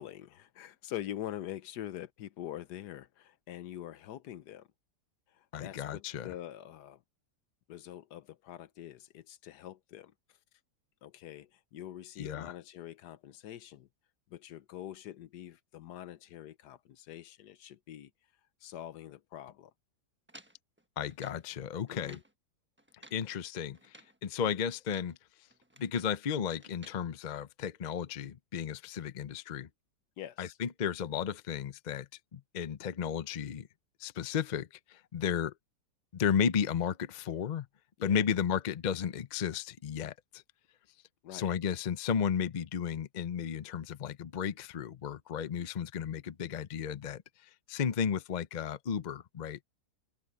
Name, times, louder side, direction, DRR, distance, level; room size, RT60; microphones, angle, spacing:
voice 1, 0.0-4.7 5.3-7.0 7.7-10.1 11.0-13.9 14.3-18.1 18.6-19.7 21.9-22.2 30.2-30.6 38.0-38.2 41.2-41.5, left 12 dB, 85° left, 1.4 m, -44 dB
voice 2, 5.5-6.3 12.2-12.5 21.0-22.2 23.1-24.0 24.2-25.2 25.8-29.7 30.4-33.7 34.0-35.5 36.1-37.7 38.0-40.4 41.3-47.2 47.7-49.6, left 7 dB, 55° left, 0.5 m, -34 dB
sound 1, 20.3-21.5 21.9-22.3 22.8-23.3 23.7-24.2 24.7-25.2 25.5-26.2 26.6-27.0, right 1 dB, 10° right, 1.1 m, -56 dB
omnidirectional pair, 1.8 m